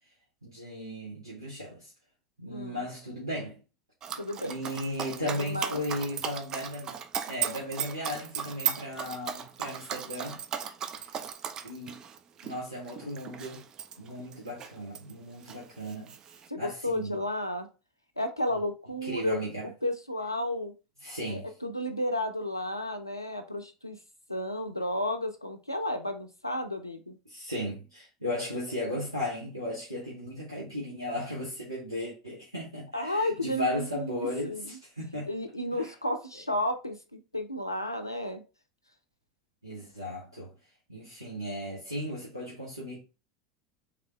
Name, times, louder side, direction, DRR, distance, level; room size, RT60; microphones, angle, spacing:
voice 1, 0.4-1.9 2.4-3.6 4.4-7.0 7.3-10.4 11.0-11.1 11.6-12.0 12.4-13.6 14.0-16.1 16.6-17.2 19.0-19.6 21.0-21.5 27.3-35.3 35.7-35.9 39.6-40.5 40.9-43.0, left 1 dB, 90° right, 1.1 m, -36 dB
voice 2, 2.5-2.9 4.2-4.6 5.2-5.8 16.5-17.7 18.2-20.7 21.2-24.0 24.3-27.2 32.9-34.8 35.3-38.4, left 1 dB, 90° left, 0.5 m, -33 dB
Dog, 4.0-15.1 15.4-16.5, right 8 dB, 35° right, 0.4 m, -36 dB
3.6 x 3.3 x 3.3 m
figure-of-eight pair, 75°, 2 cm